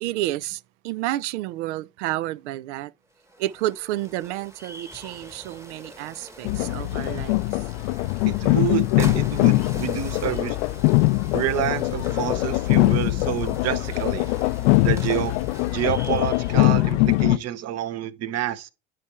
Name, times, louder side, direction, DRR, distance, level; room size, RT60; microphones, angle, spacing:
voice 1, 0.0-2.9 3.4-7.4, right 15 dB, 80° right, 0.5 m, -30 dB
sound 1, 3.1-17.2, right 1 dB, 10° right, 1.1 m, -44 dB
sound 2, 6.4-17.4, left 20 dB, 70° left, 0.5 m, -22 dB
voice 2, 8.3-10.6 11.3-14.3 14.8-15.3 15.7-18.7, right 11 dB, 50° right, 0.9 m, -28 dB
9.5 x 3.3 x 4.3 m
supercardioid pair, 95°, 34 cm